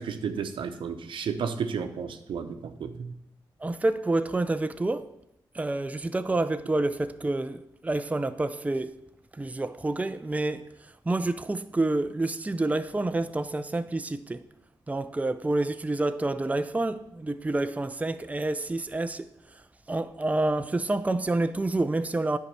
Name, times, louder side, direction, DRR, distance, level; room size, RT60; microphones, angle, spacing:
voice 1, 0.0-3.2, right 6 dB, 75° right, 0.8 m, -32 dB
voice 2, 3.6-5.1 5.5-8.9 9.4-10.7 11.1-14.4 14.9-19.3 19.9-22.4, right 2 dB, 15° right, 0.5 m, -28 dB
9.8 x 4.6 x 6.8 m
cardioid pair, 55°, 9 cm